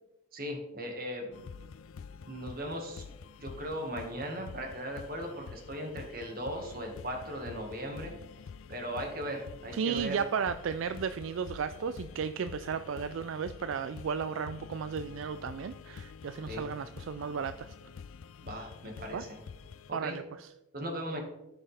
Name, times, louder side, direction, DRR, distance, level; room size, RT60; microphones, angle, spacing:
voice 1, 0.3-1.3 2.3-3.0 3.4-8.1 8.7-10.2 16.5-16.6 18.4-19.4 19.9-20.2 20.7-21.2, equal, 45° right, 2 dB, 1.7 m, -38 dB
sound 1, 1.3-19.9, left 6 dB, 80° left, 0.4 m, -48 dB
voice 2, 9.7-17.7 19.1-19.2 19.9-20.5, right 6 dB, 70° right, 11 dB, 0.3 m, -34 dB
13.5 x 5.6 x 3.4 m, 0.94 s
head